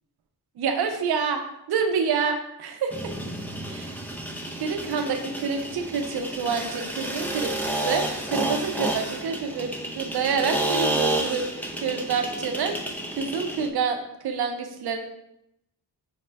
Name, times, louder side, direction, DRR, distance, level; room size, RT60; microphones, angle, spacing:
voice 1, 0.6-1.4 1.7-2.9 3.7-3.9 4.6-11.4 11.8-14.0 14.2-15.0, right 6 dB, 75° right, 5 dB, 0.6 m, -27 dB
sound 1, 2.9-13.7, right 1 dB, 5° left, 0.5 m, -30 dB
5.0 x 2.2 x 3.3 m, 0.81 s
cardioid pair, 90°, 39 cm